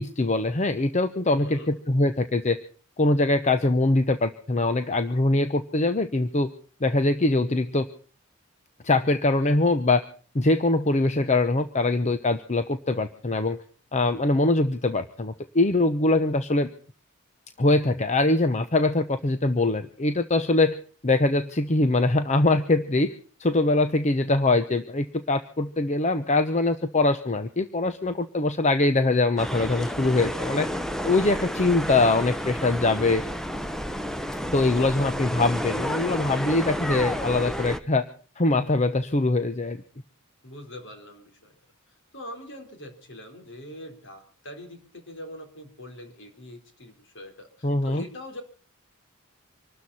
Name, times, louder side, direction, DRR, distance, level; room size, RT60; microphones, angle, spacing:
voice 1, 0.0-2.6 3.0-6.5 6.8-7.9 8.8-10.0 10.3-13.6 13.9-16.7 17.6-20.8 21.0-23.1 23.4-30.7 31.0-33.2 34.5-38.1 38.4-39.8 47.6-48.0, left 2 dB, 35° left, 10 dB, 0.8 m, -23 dB
voice 2, 1.3-1.7 40.4-41.5 42.1-48.4, left 1 dB, 60° left, 5 dB, 4.1 m, -42 dB
sound 1, 29.4-37.8, equal, ahead, 0.8 m, -31 dB
25.5 x 13.0 x 4.2 m, 0.41 s
head